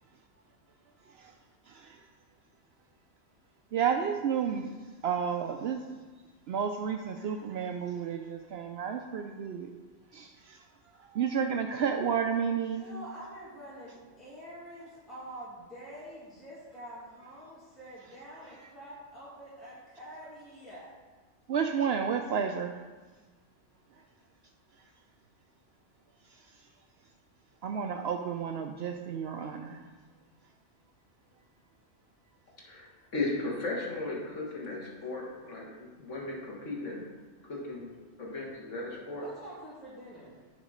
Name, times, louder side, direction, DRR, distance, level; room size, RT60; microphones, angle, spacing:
voice 1, 3.7-4.7 5.0-5.8 6.5-9.7 10.1-10.6 11.1-12.9 21.5-22.7 27.6-29.8, right 7 dB, 65° right, 5 dB, 0.7 m, -31 dB
voice 2, 12.7-20.9 34.9-35.0 39.2-40.4, right 1 dB, ahead, -10 dB, 2.1 m, -46 dB
voice 3, 32.6-32.9 33.1-37.0 37.4-37.9 38.2-39.3, left 2 dB, 85° left, -3 dB, 2.1 m, -36 dB
11.0 x 4.0 x 5.1 m, 1.3 s
omnidirectional pair, 1.2 m